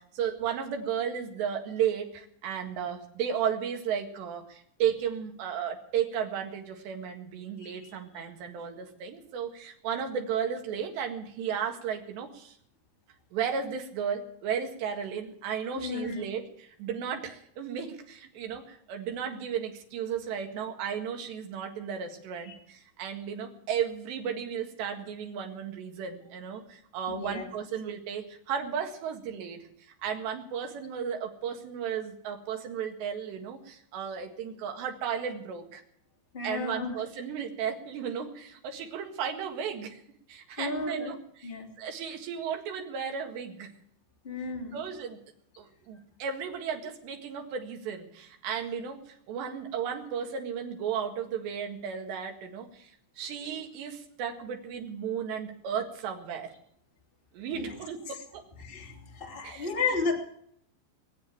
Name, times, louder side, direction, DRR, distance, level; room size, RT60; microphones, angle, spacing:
voice 1, 0.0-12.6 13.3-35.8 36.4-40.0 40.3-43.7 44.7-45.2 45.6-56.5 57.3-58.4 59.4-59.7, right 8 dB, 70° right, 3 dB, 3.9 m, -34 dB
voice 2, 7.6-7.9 15.7-16.3 27.1-27.5 36.3-37.0 40.6-41.1 41.4-41.7 44.2-44.8 57.5-57.7 58.6-60.1, left 4 dB, 20° left, 0 dB, 1.6 m, -33 dB
21.0 x 7.8 x 8.7 m, 0.68 s
omnidirectional pair, 5.5 m